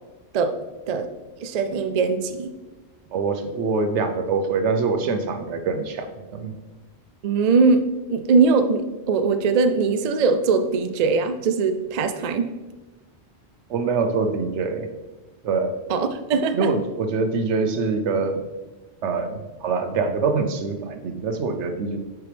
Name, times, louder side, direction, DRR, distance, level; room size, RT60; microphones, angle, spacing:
voice 1, 1.4-2.5 7.2-12.5 15.9-16.7, right 4 dB, 55° right, 8 dB, 0.4 m, -21 dB
voice 2, 3.1-6.5 13.7-14.9 15.4-15.7 16.3-18.4 19.0-22.0, right 4 dB, 90° right, 6 dB, 1.0 m, -24 dB
7.8 x 4.7 x 3.3 m, 1.2 s
omnidirectional pair, 1.1 m